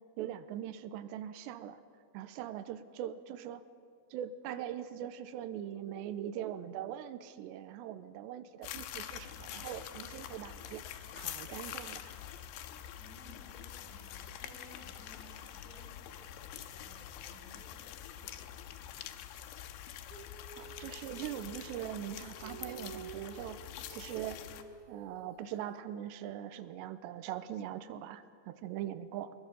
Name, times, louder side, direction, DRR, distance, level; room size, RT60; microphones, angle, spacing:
voice 1, 0.2-1.8 2.1-3.6 4.1-12.1 20.6-23.6 23.9-24.4 24.9-29.3, right 11 dB, 85° right, 11 dB, 3.0 m, -41 dB
sound 1, 8.6-24.6, left 11 dB, 90° left, 3.2 m, -46 dB
voice 2, 12.9-19.1 20.0-20.1, equal, 20° right, -3 dB, 7.3 m, -59 dB
Female singing, 20.1-25.8, right 5 dB, 70° right, 3.2 m, -51 dB
23.0 x 22.0 x 7.0 m, 2.1 s
omnidirectional pair, 5.0 m